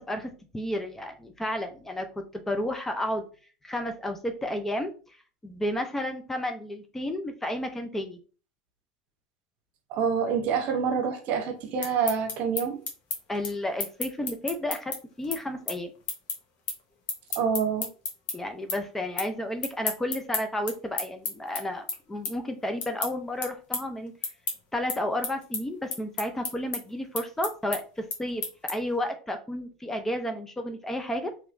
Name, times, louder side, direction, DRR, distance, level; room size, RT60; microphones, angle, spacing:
voice 1, 0.0-3.2 3.6-4.9 5.4-8.2 13.3-15.9 18.3-24.1 24.7-31.3, left 1 dB, 10° left, 0.5 m, -32 dB
voice 2, 9.9-12.8 17.3-17.9, right 6 dB, 55° right, 0.9 m, -27 dB
sound 1, 11.6-18.3 18.7-19.3 19.6-29.0, left 4 dB, 50° left, 1.1 m, -33 dB
3.1 x 3.0 x 2.5 m
supercardioid pair, 105°, 3 cm